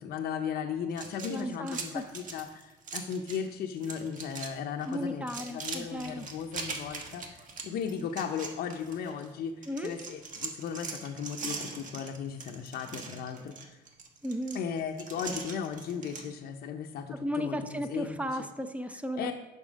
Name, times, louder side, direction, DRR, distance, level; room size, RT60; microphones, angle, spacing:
voice 1, 0.0-13.8 14.5-18.5 19.1-19.3, left 7 dB, 65° left, 4 dB, 0.6 m, -36 dB
sound 1, 0.9-3.5 3.8-4.5 4.8-9.3 9.6-16.3, right 4 dB, 50° right, 1.4 m, -41 dB
voice 2, 1.3-1.8 4.9-6.2 9.7-9.9 14.2-14.6 17.2-19.3, equal, 10° right, 8 dB, 0.5 m, -34 dB
7.2 x 5.8 x 5.2 m, 1.2 s
cardioid pair, 110°, 17 cm